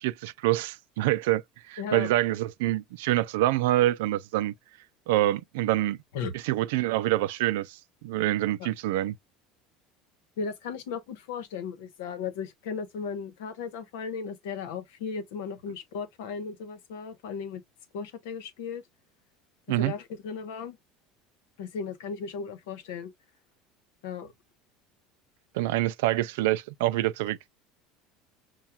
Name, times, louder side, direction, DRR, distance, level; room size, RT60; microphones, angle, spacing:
voice 1, 0.0-4.5 5.1-6.0 6.3-9.2 19.7-19.9 25.5-27.4, right 15 dB, 85° right, 0.3 m, -26 dB
voice 2, 1.8-2.1 6.1-6.4 8.6-8.7 10.4-17.6 17.9-18.8 19.8-20.8 21.6-23.1 24.0-24.3, left 6 dB, 85° left, 0.9 m, -36 dB
5.6 x 2.3 x 2.3 m
supercardioid pair, 125°, 0 cm